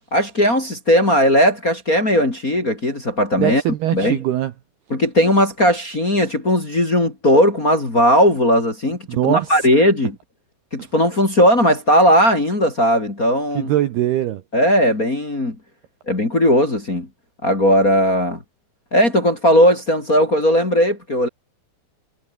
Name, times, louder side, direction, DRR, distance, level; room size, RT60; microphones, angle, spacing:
voice 1, 0.1-3.6 3.9-4.2 4.9-10.2 10.7-13.7 14.5-15.5 16.1-17.1 17.4-18.4 18.9-21.3, equal, 20° left, 2.7 m, -17 dB
voice 2, 3.4-4.5 9.1-9.7 13.5-14.4, right 13 dB, 70° right, 2.6 m, -21 dB
omnidirectional pair, 6.0 m